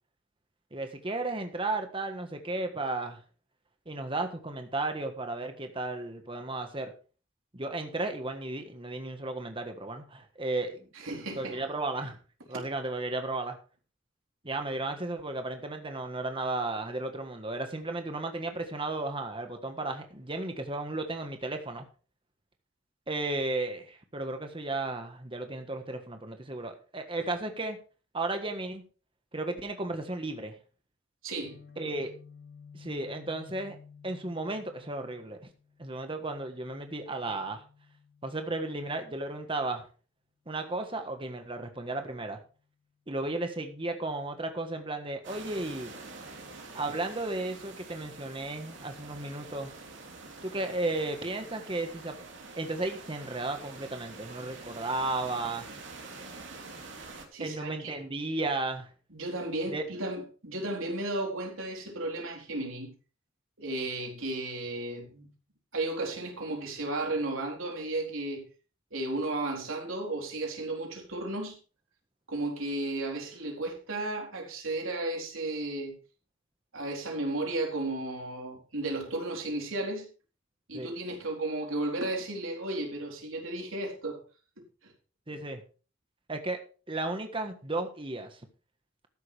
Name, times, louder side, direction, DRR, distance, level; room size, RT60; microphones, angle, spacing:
voice 1, 0.7-3.2 3.9-6.9 7.5-10.9 11.4-12.2 12.5-13.6 14.4-21.8 23.1-27.8 28.1-28.8 29.3-30.6 31.8-32.1 32.7-33.7 34.0-35.4 35.8-37.6 38.2-39.8 40.5-42.4 43.1-45.9 46.7-49.7 50.4-52.2 52.6-55.7 57.4-58.9 59.7-59.8 80.7-80.9 85.3-85.6 86.3-86.6 86.9-88.4, right 2 dB, 25° right, 1.5 m, -34 dB
voice 2, 10.9-11.6 31.2-31.6 57.3-58.0 59.1-62.9 63.6-65.3 65.7-68.5 68.9-71.6 72.3-76.0 76.7-80.1 80.7-84.2 84.8-84.9, right 2 dB, 90° right, 4.1 m, -34 dB
Guitar, 31.4-39.3, left 6 dB, 80° left, 3.2 m, -54 dB
sound 1, 45.2-57.3, right 3 dB, 65° right, 3.3 m, -46 dB
13.5 x 11.0 x 3.5 m
head